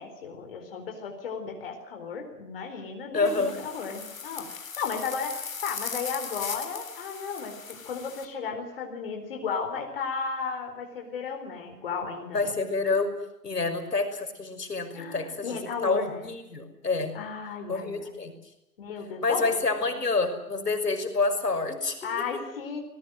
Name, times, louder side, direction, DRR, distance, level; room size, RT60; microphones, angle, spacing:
voice 1, 0.0-12.5 13.6-13.7 14.9-16.3 17.1-18.1 18.8-19.5 22.0-22.8, left 5 dB, 35° left, 3 dB, 4.3 m, -34 dB
voice 2, 3.1-3.6 12.3-13.2 13.4-17.2 17.7-18.3 19.2-22.1, left 3 dB, 75° left, 7 dB, 6.1 m, -28 dB
sound 1, 3.3-8.3, left 6 dB, 55° left, 3.8 m, -38 dB
25.0 x 21.0 x 7.7 m, 0.88 s
figure-of-eight pair, 155°, 48 cm